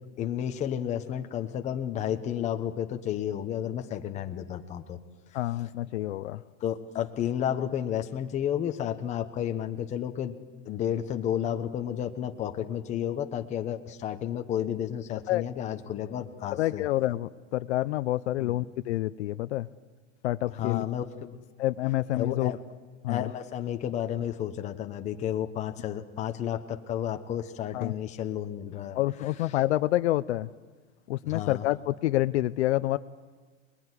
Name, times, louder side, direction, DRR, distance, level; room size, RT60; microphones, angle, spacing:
voice 1, 0.2-5.0 6.6-10.3 10.6-16.8 18.4-18.6 20.5-21.4 22.1-22.6 23.1-29.0 31.3-31.6, left 10 dB, 20° left, 6 dB, 1.1 m, -32 dB
voice 2, 5.3-6.4 15.3-15.4 16.5-19.7 20.2-20.8 21.6-22.5 23.0-23.3 27.7-27.9 29.0-30.5 31.1-33.0, left 15 dB, 60° left, 13 dB, 0.7 m, -28 dB
26.5 x 21.0 x 9.8 m, 1.4 s
supercardioid pair, 160°, 38 cm